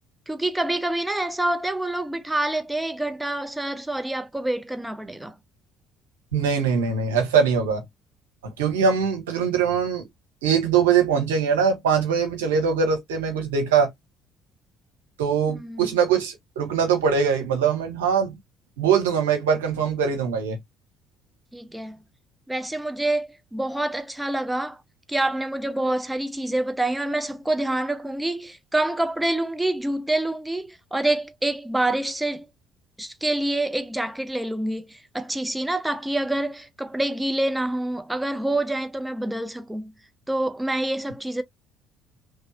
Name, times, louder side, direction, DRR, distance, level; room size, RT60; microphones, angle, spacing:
voice 1, 0.3-5.3 15.5-15.9 21.5-22.0 22.5-24.8 25.1-32.5 33.0-39.9 40.3-41.4, right 1 dB, 10° right, 0.6 m, -27 dB
voice 2, 6.3-7.8 8.4-10.0 10.4-13.9 15.2-18.3 18.8-20.6, right 6 dB, 80° right, 1.1 m, -22 dB
3.1 x 2.7 x 2.4 m
hypercardioid pair, 55°, 0 cm